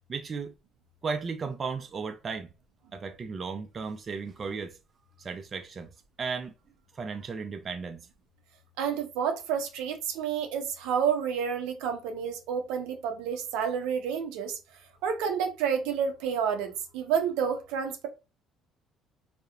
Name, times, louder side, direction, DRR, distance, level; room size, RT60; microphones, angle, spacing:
voice 1, 0.1-0.5 1.0-2.5 2.9-4.7 5.2-5.9 6.2-6.5 6.9-8.0, right 5 dB, 35° right, 0.4 m, -35 dB
voice 2, 8.8-14.6 15.0-18.1, right 7 dB, 85° right, 0.5 m, -29 dB
2.8 x 2.0 x 2.3 m
cardioid pair, 95°, 0 cm